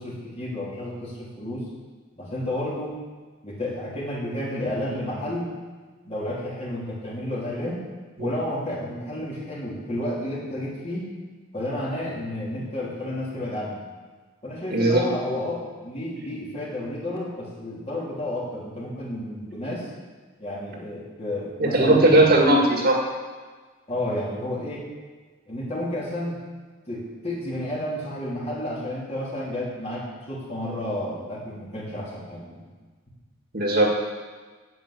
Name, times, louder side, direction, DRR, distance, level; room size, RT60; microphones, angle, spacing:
voice 1, 0.0-1.7 2.2-2.9 3.4-5.5 6.0-7.8 8.2-11.1 11.5-13.8 14.4-19.9 20.4-22.5 23.9-24.8 25.5-26.4 26.9-32.7, left 1 dB, 30° left, -5 dB, 3.0 m, -31 dB
voice 2, 14.7-15.1 21.6-23.0 33.5-34.0, right 1 dB, 45° right, 0 dB, 1.9 m, -18 dB
9.3 x 7.7 x 8.3 m, 1.4 s
head